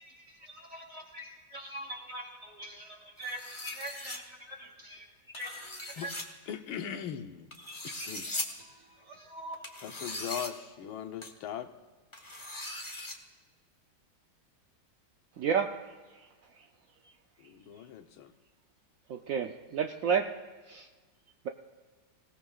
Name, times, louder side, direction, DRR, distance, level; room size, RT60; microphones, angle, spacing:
voice 1, 0.0-6.1 6.4-6.6 7.7-9.6, equal, 40° right, 3.4 m, -44 dB
sound 1, 3.2-4.2 5.3-6.2 7.5-8.5 9.6-10.5 11.2-11.3 12.1-13.1, left 2 dB, 15° left, 1.3 m, -40 dB
voice 2, 6.5-7.5 7.8-8.3 9.8-11.7 17.4-18.3, left 9 dB, 90° left, 1.7 m, -39 dB
voice 3, 15.4-15.8 19.1-20.4 20.7-20.9, right 7 dB, 75° right, 0.7 m, -30 dB
25.5 x 17.5 x 2.4 m
omnidirectional pair, 2.2 m